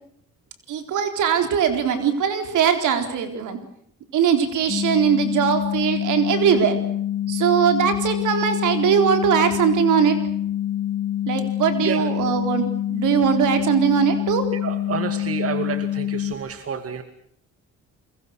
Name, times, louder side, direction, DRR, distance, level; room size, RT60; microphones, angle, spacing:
voice 1, 0.7-3.6 4.1-6.8 7.3-10.2 11.3-14.5, right 8 dB, 80° right, 7 dB, 4.0 m, -20 dB
sound 1, 4.7-16.3, left 11 dB, 50° left, 3.5 m, -26 dB
voice 2, 14.6-17.0, right 6 dB, 50° right, 8 dB, 2.4 m, -29 dB
29.0 x 22.5 x 6.5 m, 0.67 s
cardioid pair, 90°, 30 cm